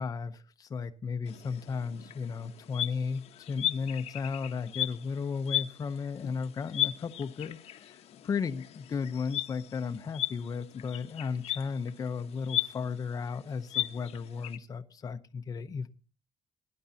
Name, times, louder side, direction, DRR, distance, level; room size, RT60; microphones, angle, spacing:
voice 1, 0.0-15.9, left 5 dB, 30° left, 0.7 m, -35 dB
sound 1, 1.3-14.6, left 13 dB, 65° left, 0.9 m, -37 dB
20.0 x 10.5 x 2.8 m
cardioid pair, 140°, 12 cm